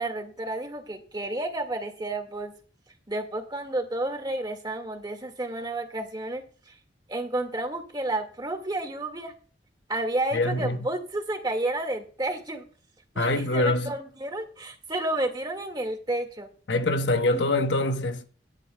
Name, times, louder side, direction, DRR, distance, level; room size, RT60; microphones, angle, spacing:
voice 1, 0.0-2.5 3.1-6.7 7.1-9.3 9.9-12.6 13.1-16.5 17.3-17.4, right 2 dB, 25° right, 1.8 m, -31 dB
voice 2, 10.3-10.9 13.2-13.9 16.7-18.3, left 2 dB, 75° left, 1.0 m, -24 dB
16.5 x 10.5 x 2.2 m
head